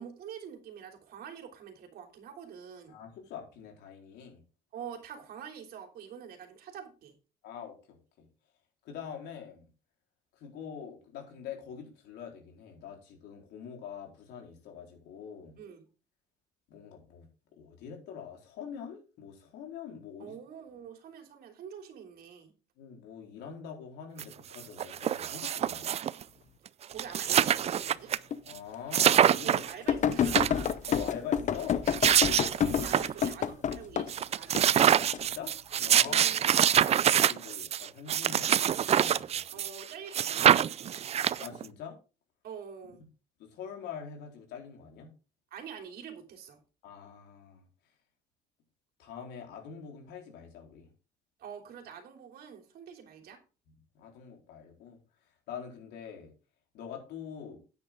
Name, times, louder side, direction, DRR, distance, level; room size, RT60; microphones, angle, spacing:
voice 1, 0.0-3.0 4.7-7.1 15.6-15.8 20.2-22.5 26.9-28.1 29.4-30.7 32.8-34.8 36.1-36.6 39.5-41.1 42.4-43.0 45.5-46.6 51.4-53.4, right 7 dB, 65° right, 4 dB, 3.2 m, -46 dB
voice 2, 2.9-4.4 7.4-8.3 8.8-9.7 10.4-15.6 16.7-17.3 17.6-20.4 22.8-25.9 28.5-29.6 30.9-31.9 35.0-35.5 35.8-36.3 36.7-39.6 41.4-42.0 43.4-45.1 46.8-47.6 49.0-50.9 53.7-55.0 55.5-56.3 56.7-57.6, left 7 dB, 80° left, 1 dB, 4.3 m, -44 dB
sound 1, 24.2-24.3 24.5-26.2 26.7-26.8 26.9-28.2 28.5-28.6 28.9-29.7 30.1-31.0 31.7-33.3 33.7-33.8 34.1-39.8 40.1-41.7, right 9 dB, 40° right, 0.4 m, -25 dB
sound 2, 28.3-28.4 29.0-29.1 29.9-34.1 34.5-35.2 35.8-36.2, left 8 dB, 45° left, 0.9 m, -28 dB
9.5 x 9.5 x 3.8 m, 0.33 s
cardioid pair, 110°, 17 cm